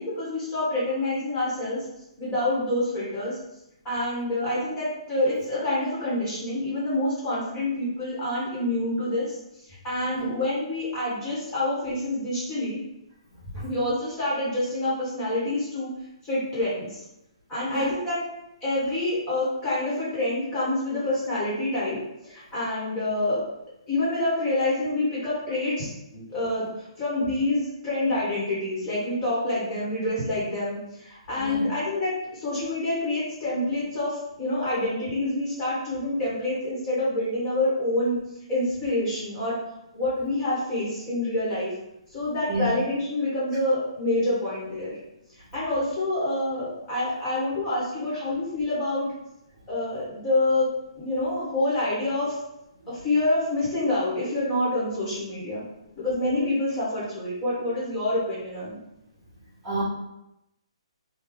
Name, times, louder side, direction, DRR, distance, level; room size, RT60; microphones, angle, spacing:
voice 1, 0.0-1.9 2.2-3.4 3.8-9.4 9.6-12.8 13.6-15.9 16.2-17.0 17.5-18.2 18.6-22.0 22.2-23.4 23.9-38.2 38.5-39.6 39.9-41.7 42.1-45.0 45.3-49.1 49.7-50.7 51.0-52.4 52.9-55.6 56.0-58.8, left 1 dB, 20° left, -8 dB, 1.4 m, -27 dB
voice 2, 10.1-10.3 13.5-13.6 17.7-17.9 31.4-31.6 42.5-42.7 59.6-59.8, equal, 20° right, -11 dB, 1.5 m, -29 dB
3.3 x 2.3 x 3.7 m, 0.85 s
hypercardioid pair, 160°, 3 cm